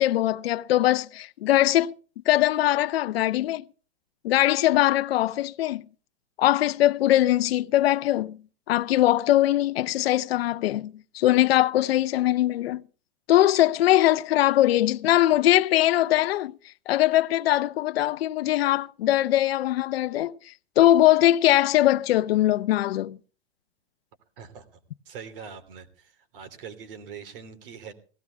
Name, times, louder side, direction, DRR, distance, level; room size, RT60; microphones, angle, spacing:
voice 1, 0.0-1.9 2.3-3.6 4.2-5.8 6.4-8.4 8.7-12.8 13.3-16.5 16.9-20.3 20.8-23.2, left 14 dB, 60° left, 0.7 m, -21 dB
voice 2, 24.4-24.8 25.0-27.9, right 6 dB, 50° right, 3.2 m, -43 dB
17.5 x 15.5 x 3.5 m
hypercardioid pair, 165°, 34 cm